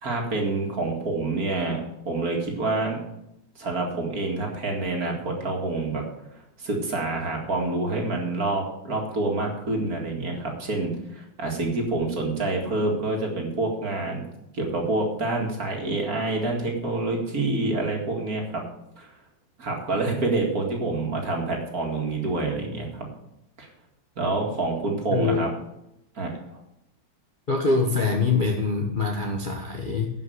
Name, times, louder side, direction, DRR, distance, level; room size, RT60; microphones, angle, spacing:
voice 1, 0.0-3.0 3.6-6.0 6.3-14.2 14.5-18.6 19.0-19.1 19.6-23.1 23.6-23.7 24.2-25.5 26.2-26.6, right 2 dB, 45° right, 0 dB, 2.5 m, -27 dB
voice 2, 25.1-25.5 27.5-30.1, left 4 dB, 30° left, 0 dB, 1.0 m, -24 dB
11.0 x 5.7 x 7.9 m, 0.83 s
omnidirectional pair, 2.2 m